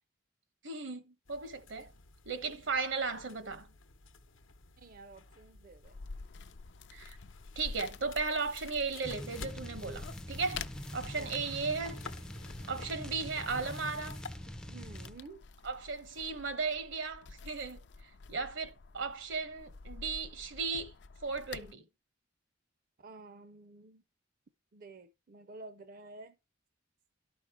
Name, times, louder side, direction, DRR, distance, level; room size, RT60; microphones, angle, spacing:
voice 1, 0.6-1.9 2.3-3.7 6.9-7.2 7.6-10.6 10.9-12.0 12.6-14.2 15.6-17.8 18.3-20.9 21.2-21.8, right 4 dB, 75° right, 1.1 m, -36 dB
sound 1, 1.2-14.4, left 4 dB, 90° left, 0.9 m, -53 dB
voice 2, 4.8-6.0 11.1-11.4 14.7-15.4 23.0-24.0 24.7-26.4, right 3 dB, 45° right, 0.5 m, -51 dB
sound 2, 5.8-21.7, left 4 dB, 65° left, 0.5 m, -49 dB
sound 3, 9.0-15.2, equal, 5° left, 0.4 m, -44 dB
12.0 x 5.2 x 4.7 m
head